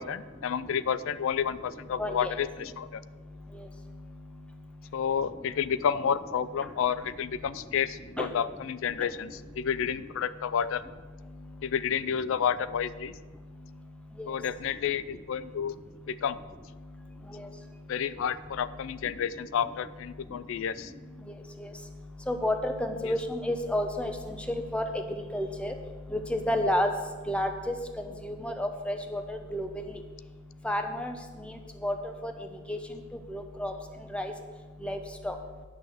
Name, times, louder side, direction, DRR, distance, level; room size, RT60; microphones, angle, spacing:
voice 1, 0.0-3.0 4.9-10.8 11.6-13.1 14.3-15.8 16.1-16.4 17.9-20.9 23.0-23.1, left 8 dB, 70° left, 16 dB, 0.4 m, -30 dB
voice 2, 2.0-2.3 8.2-8.3 14.2-14.3 17.3-17.5 21.6-21.7 22.3-24.8 25.3-25.7 26.1-26.9 27.3-27.7 28.2-29.7 30.6-31.1 31.8-31.9 32.2-32.3 32.7-32.8 33.3-33.7 34.1-34.3 34.8-35.0 35.2-35.3, left 1 dB, 5° left, 5 dB, 0.8 m, -30 dB
9.5 x 6.2 x 6.7 m, 1.3 s
head